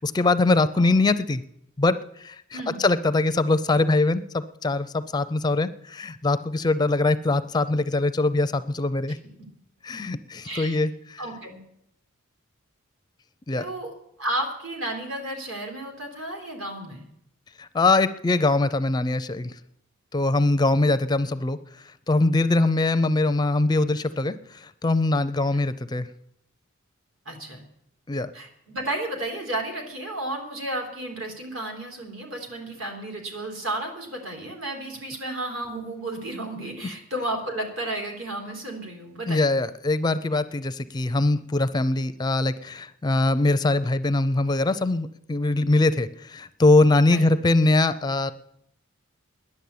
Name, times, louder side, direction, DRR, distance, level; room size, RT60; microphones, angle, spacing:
voice 1, 0.0-1.4 1.8-9.2 9.8-11.2 13.5-13.7 17.6-19.5 20.1-21.6 22.1-26.1 28.1-28.3 39.3-48.3, left 2 dB, 20° left, 12 dB, 0.4 m, -22 dB
voice 2, 2.5-2.8 10.4-10.8 11.2-11.6 13.6-13.9 14.2-17.1 27.3-27.6 28.3-39.5 47.1-47.3, right 1 dB, 65° right, 2 dB, 3.7 m, -32 dB
12.0 x 10.5 x 8.5 m, 0.78 s
head